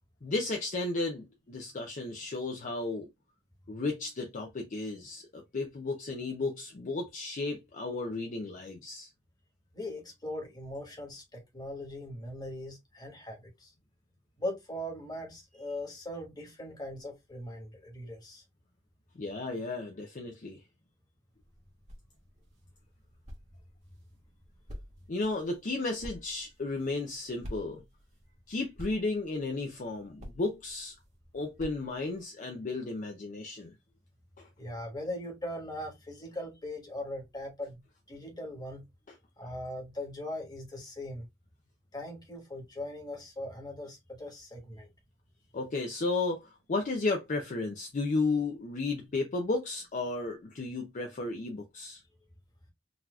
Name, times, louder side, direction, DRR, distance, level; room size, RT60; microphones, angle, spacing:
voice 1, 0.2-3.1 3.7-9.1 19.2-20.6 25.1-27.8 28.5-31.0 31.3-33.7 45.5-52.0, left 3 dB, 40° left, 0.5 m, -33 dB
voice 2, 9.7-13.7 14.4-18.4 34.6-37.8 38.1-38.8 39.4-41.3 41.9-44.9, left 1 dB, 20° left, 1.4 m, -40 dB
sound 1, 21.3-32.2, equal, 35° right, 1.2 m, -50 dB
4.0 x 2.8 x 2.3 m
head